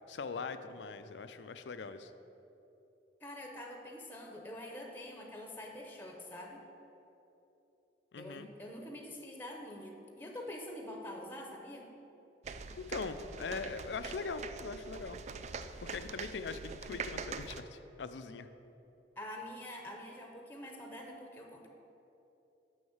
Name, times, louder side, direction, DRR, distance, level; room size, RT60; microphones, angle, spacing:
voice 1, 0.1-2.1 8.1-8.5 12.8-15.2 15.8-18.5, left 4 dB, 85° left, 11 dB, 0.5 m, -41 dB
voice 2, 3.2-6.6 8.2-11.9 19.2-21.7, left 1 dB, 10° left, 2 dB, 0.7 m, -46 dB
sound 1, 12.4-17.6, right 5 dB, 40° right, 0.3 m, -43 dB
6.4 x 6.3 x 7.2 m, 3.0 s
head